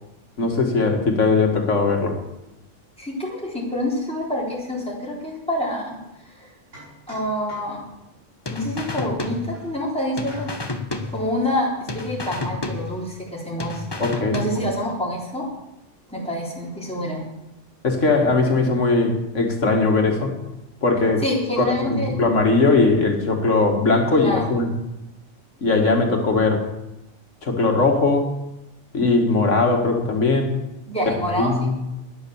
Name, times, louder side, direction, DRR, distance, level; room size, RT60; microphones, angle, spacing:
voice 1, 0.4-2.2 14.0-14.4 17.8-20.4 20.8-21.2 21.6-24.7 25.6-26.6 27.4-28.3 28.9-30.6 31.4-31.8, left 3 dB, 90° left, 3 dB, 2.5 m, -19 dB
voice 2, 3.0-6.0 6.4-6.5 7.1-7.8 8.5-10.5 11.1-13.8 14.3-15.5 16.1-17.2 21.2-22.1 24.2-24.5 30.9-31.5, left 1 dB, 5° left, -4 dB, 3.6 m, -27 dB
sound 1, 6.0-6.1 6.7-8.0 8.9-9.8 10.2-10.8, right 1 dB, 90° right, 6.9 m, -44 dB
sound 2, 8.5-9.9 10.2-11.6 11.9-13.3 13.6-14.9, left 3 dB, 20° left, 1.1 m, -31 dB
12.5 x 10.5 x 7.2 m, 0.95 s
omnidirectional pair, 1.2 m